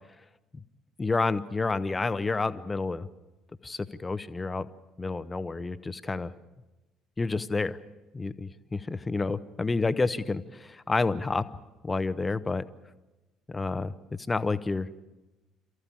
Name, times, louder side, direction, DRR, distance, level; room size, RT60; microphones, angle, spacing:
voice 1, 1.0-3.1 3.6-4.7 5.0-6.3 7.2-7.8 8.1-11.4 11.8-12.6 13.5-13.9 14.3-15.0, left 3 dB, 20° left, 14 dB, 1.0 m, -29 dB
28.5 x 14.5 x 8.6 m, 1.1 s
figure-of-eight pair, 55°, 0 cm